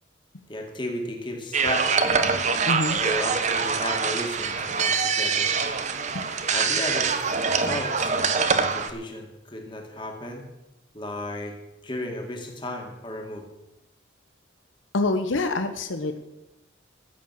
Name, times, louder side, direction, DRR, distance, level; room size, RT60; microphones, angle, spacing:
voice 1, 0.5-2.1 2.9-5.5 6.5-7.3 7.6-10.4 10.9-11.6 11.8-13.5, left 1 dB, 25° left, 2 dB, 2.3 m, -34 dB
sound 1, 1.5-8.9, right 5 dB, 35° right, 0.9 m, -24 dB
voice 2, 2.7-3.0 6.1-6.2 14.9-16.2, left 2 dB, 80° left, 9 dB, 0.9 m, -26 dB
14.0 x 7.5 x 7.4 m, 0.95 s
head